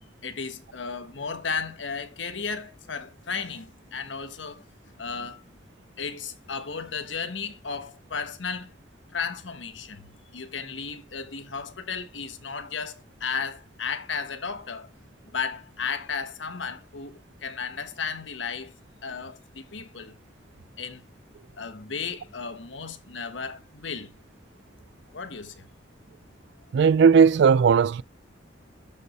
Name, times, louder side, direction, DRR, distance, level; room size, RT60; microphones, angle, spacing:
voice 1, 0.2-4.6 5.0-5.4 6.0-8.7 9.1-14.9 15.3-18.8 19.0-20.1 20.8-21.0 21.6-24.1 25.1-25.7, left 5 dB, 80° left, 1.3 m, -34 dB
voice 2, 26.7-28.0, right 6 dB, 65° right, 0.4 m, -17 dB
12.5 x 5.4 x 3.2 m
head